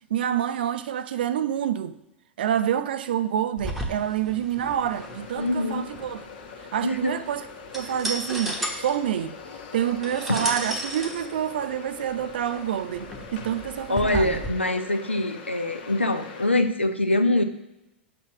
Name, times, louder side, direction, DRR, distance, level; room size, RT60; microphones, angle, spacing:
voice 1, 0.1-2.0 2.4-6.2 6.6-7.5 7.7-9.4 9.7-14.4, right 10 dB, 60° right, 0.3 m, -27 dB
sound 1, 3.6-14.5, right 1 dB, ahead, 1.0 m, -35 dB
sound 2, 4.9-16.5, left 5 dB, 55° left, 0.9 m, -43 dB
voice 2, 5.4-5.8 6.8-7.1 10.4-10.5 13.9-17.4, left 1 dB, 85° left, 0.5 m, -24 dB
6.0 x 4.2 x 5.9 m
figure-of-eight pair, 95°, 6 cm